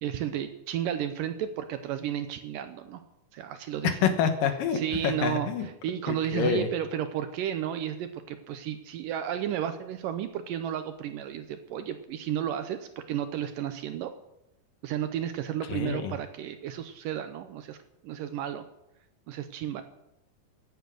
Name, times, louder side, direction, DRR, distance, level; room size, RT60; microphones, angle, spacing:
voice 1, 0.0-3.0 3.3-4.0 4.7-14.1 14.8-17.8 18.0-18.7 19.3-19.8, right 10 dB, 75° right, 9 dB, 2.1 m, -33 dB
voice 2, 3.8-5.7 6.1-6.7 15.7-16.1, left 7 dB, 70° left, 8 dB, 2.7 m, -27 dB
16.0 x 9.5 x 6.4 m, 0.87 s
omnidirectional pair, 4.4 m